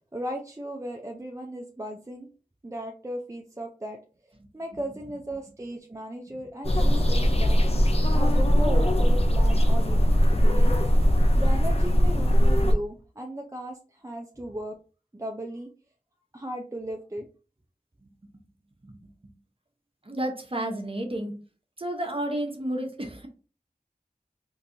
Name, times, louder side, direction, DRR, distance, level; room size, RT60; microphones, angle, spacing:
voice 1, 0.0-2.3 2.6-10.8 11.4-14.8 15.1-15.7 16.3-17.3, right 1 dB, 20° right, 1 dB, 0.5 m, -36 dB
sound 1, 6.6-12.7, equal, 40° left, 0.6 m, -20 dB
voice 2, 20.0-21.3 21.8-23.3, right 1 dB, 35° right, 3 dB, 0.9 m, -31 dB
3.8 x 2.8 x 2.6 m, 0.36 s
wide cardioid pair, 45°, 15 cm